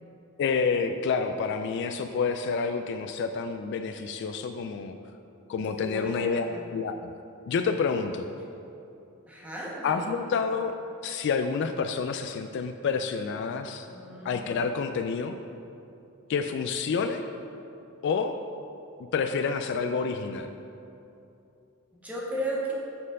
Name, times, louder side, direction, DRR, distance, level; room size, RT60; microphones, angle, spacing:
voice 1, 0.4-4.9 5.5-7.1 7.5-8.3 9.8-10.8 11.0-13.9 14.2-15.4 16.3-17.3 18.0-18.4 19.1-20.5, left 5 dB, 55° left, 7 dB, 0.3 m, -28 dB
voice 2, 5.8-6.5 9.3-10.1 13.9-14.6 21.9-22.7, right 1 dB, 5° right, -5 dB, 1.2 m, -35 dB
7.4 x 4.3 x 5.3 m, 2.8 s
head